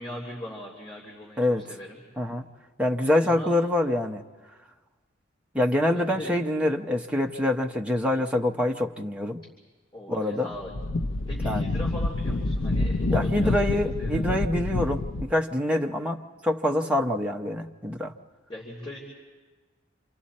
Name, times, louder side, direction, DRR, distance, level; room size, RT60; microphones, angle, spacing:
voice 1, 0.0-2.0 3.2-3.5 5.9-6.4 9.9-10.7 11.3-13.6 14.0-14.2 18.5-19.0, left 1 dB, 25° left, -4 dB, 3.2 m, -39 dB
voice 2, 2.8-4.2 5.5-9.4 10.1-10.5 11.4-11.6 13.1-18.1, left 1 dB, 5° right, 1 dB, 0.9 m, -25 dB
Wind, 10.5-15.4, left 2 dB, 75° left, 0.6 m, -27 dB
28.0 x 27.5 x 4.3 m, 1.3 s
head